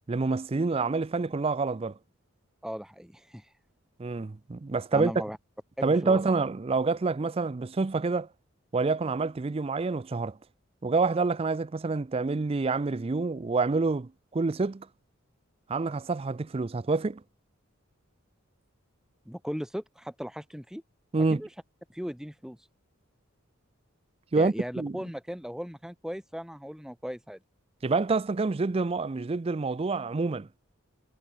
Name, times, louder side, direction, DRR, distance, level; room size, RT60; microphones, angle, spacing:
voice 1, 0.1-2.0 4.0-5.1 5.8-8.3 8.7-10.4 10.8-14.9 15.7-17.2 21.1-21.4 24.3-25.0 27.8-30.5, right 3 dB, 25° right, 0.4 m, -27 dB
voice 2, 2.6-3.5 4.9-5.4 5.8-6.2 19.3-20.8 21.3-21.5 21.9-22.7 24.4-27.4, equal, 5° right, 2.0 m, -37 dB
head